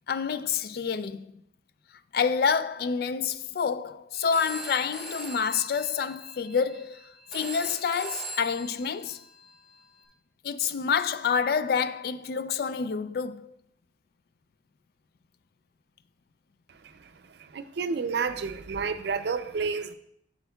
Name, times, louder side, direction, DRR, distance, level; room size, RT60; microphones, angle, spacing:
voice 1, 0.1-1.3 2.1-7.0 7.3-9.2 10.4-13.5, left 6 dB, 55° left, 0.3 m, -28 dB
Telephone, 4.1-10.0, right 1 dB, ahead, 1.5 m, -42 dB
voice 2, 16.8-19.9, right 5 dB, 65° right, 0.4 m, -31 dB
7.9 x 7.1 x 2.3 m
head